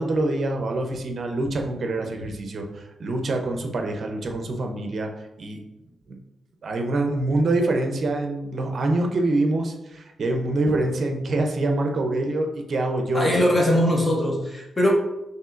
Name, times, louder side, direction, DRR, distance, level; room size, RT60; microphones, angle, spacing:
voice 1, 0.0-5.1 5.4-5.6 6.1-6.2 6.6-13.6, right 2 dB, 45° right, 3 dB, 0.6 m, -25 dB
voice 2, 13.1-14.9, left 1 dB, 20° left, -2 dB, 0.8 m, -21 dB
5.3 x 3.1 x 2.5 m, 0.94 s
wide cardioid pair, 130°, 0 cm